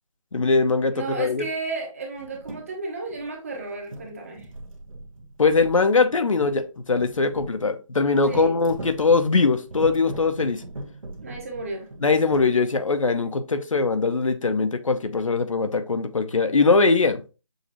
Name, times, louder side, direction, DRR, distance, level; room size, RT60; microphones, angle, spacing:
voice 1, 0.3-1.5 5.4-10.6 12.0-17.2, left 4 dB, 70° left, 0.7 m, -21 dB
voice 2, 0.9-4.5 8.3-8.6 11.2-11.9, right 3 dB, 25° right, 0.9 m, -33 dB
sound 1, 2.1-2.7 3.1-3.6 3.9-7.6 8.3-12.5, right 1 dB, 75° right, 1.2 m, -39 dB
6.4 x 2.4 x 2.9 m
figure-of-eight pair, 160°, 17 cm